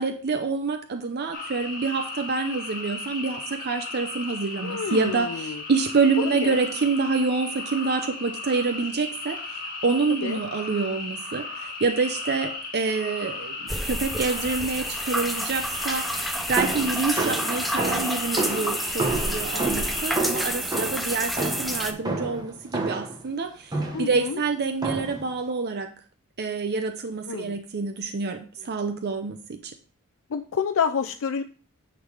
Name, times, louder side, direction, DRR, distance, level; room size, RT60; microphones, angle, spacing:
voice 1, 0.0-25.9 26.4-29.7, right 4 dB, 45° right, 6 dB, 0.6 m, -27 dB
sound 1, 1.3-20.1, left 3 dB, 40° left, 2.1 m, -36 dB
voice 2, 4.6-5.6 6.2-6.6 10.2-10.4 23.9-24.4 27.3-27.6 30.3-31.4, left 6 dB, 60° left, 6 dB, 0.4 m, -28 dB
sound 2, 13.7-21.9, equal, ahead, 0.7 m, -29 dB
sound 3, 16.6-23.2 23.7-24.2 24.8-25.3, right 3 dB, 20° right, 1.2 m, -30 dB
9.2 x 4.0 x 4.8 m, 0.42 s
head